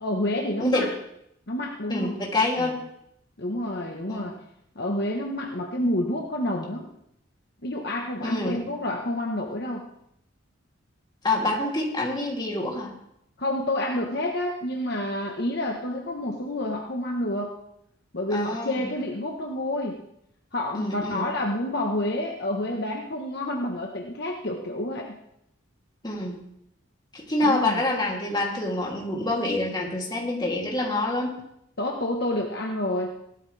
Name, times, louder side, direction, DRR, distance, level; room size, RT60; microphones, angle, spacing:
voice 1, 0.0-0.9 1.5-2.2 2.6-2.7 3.4-4.4 4.7-6.9 7.6-9.9 13.4-17.5 18.1-20.0 20.5-25.2 27.4-27.8 31.8-33.1, left 1 dB, 55° left, 1 dB, 1.3 m, -29 dB
voice 2, 1.9-2.8 4.1-4.3 8.2-8.6 11.2-12.9 18.3-18.9 20.7-21.2 26.0-26.4 27.1-31.3, left 2 dB, 20° left, -2 dB, 3.0 m, -26 dB
18.0 x 12.5 x 3.4 m, 0.76 s
head